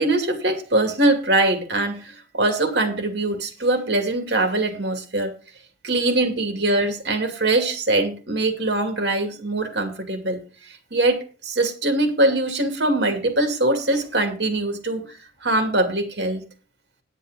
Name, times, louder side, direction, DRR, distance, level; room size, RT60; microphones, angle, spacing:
voice 1, 0.0-5.3 5.8-15.1 15.4-16.4, right 2 dB, 70° right, 5 dB, 2.6 m, -22 dB
9.9 x 8.9 x 5.0 m, 0.35 s
head